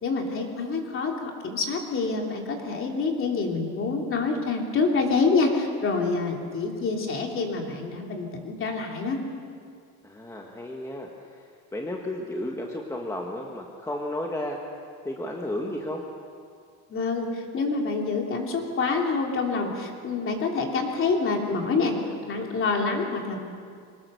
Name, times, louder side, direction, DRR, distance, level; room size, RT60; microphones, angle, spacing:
voice 1, 0.0-9.2 16.9-22.0 22.2-23.4, left 4 dB, 35° left, 1 dB, 3.2 m, -27 dB
voice 2, 10.0-14.6 15.0-16.0, left 1 dB, 10° left, 0 dB, 1.5 m, -33 dB
24.0 x 19.0 x 6.9 m, 2.2 s
cardioid pair, 150°, 35 cm